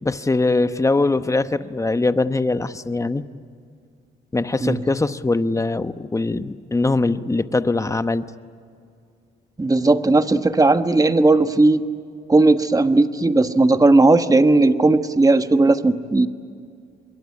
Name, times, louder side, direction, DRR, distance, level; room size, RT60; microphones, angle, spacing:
voice 1, 0.0-3.2 4.3-8.3, left 3 dB, 15° left, 11 dB, 1.0 m, -22 dB
voice 2, 9.6-11.8 12.3-16.3, right 2 dB, 20° right, 9 dB, 1.3 m, -16 dB
26.0 x 22.5 x 9.9 m, 2.3 s
cardioid pair, 90°, 20 cm